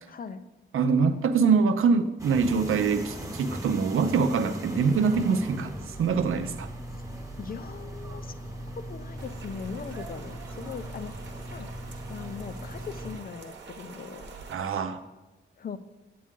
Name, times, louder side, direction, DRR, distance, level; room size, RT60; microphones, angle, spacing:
voice 1, 0.1-0.5 7.4-11.7 12.1-14.4 15.6-15.8, left 6 dB, 45° left, 11 dB, 0.5 m, -40 dB
voice 2, 0.7-6.7 14.5-15.0, right 5 dB, 85° right, 9 dB, 0.6 m, -24 dB
sound 1, 2.2-13.2, right 1 dB, 15° right, 0.9 m, -39 dB
Rain, 9.2-14.6, right 4 dB, 60° right, 1.0 m, -46 dB
8.5 x 8.3 x 3.7 m, 1.1 s
wide cardioid pair, 160°, 21 cm